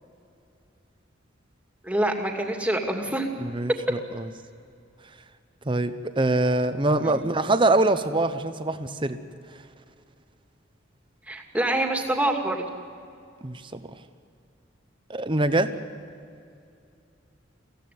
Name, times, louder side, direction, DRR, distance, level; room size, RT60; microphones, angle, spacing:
voice 1, 1.8-3.3 7.0-7.2 11.3-12.6, right 1 dB, 5° right, 2 dB, 2.3 m, -26 dB
voice 2, 3.4-4.2 5.7-9.2 13.4-13.6 15.1-15.7, right 2 dB, 25° right, 9 dB, 1.0 m, -24 dB
24.0 x 16.0 x 9.4 m, 2.5 s
head